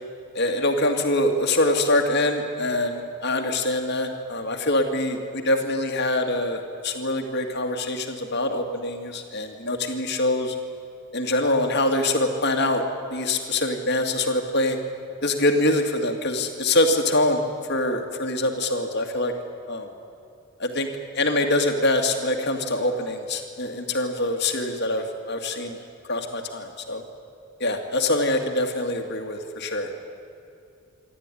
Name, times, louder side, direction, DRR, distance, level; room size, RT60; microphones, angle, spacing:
voice 1, 0.3-10.6 11.1-12.8 13.1-14.8 15.2-17.4 17.7-19.3 19.7-19.9 20.6-20.9 21.2-25.8 26.1-27.0 27.6-29.9, left 1 dB, 50° left, 4 dB, 2.1 m, -24 dB
27.5 x 12.5 x 9.9 m, 2.7 s
head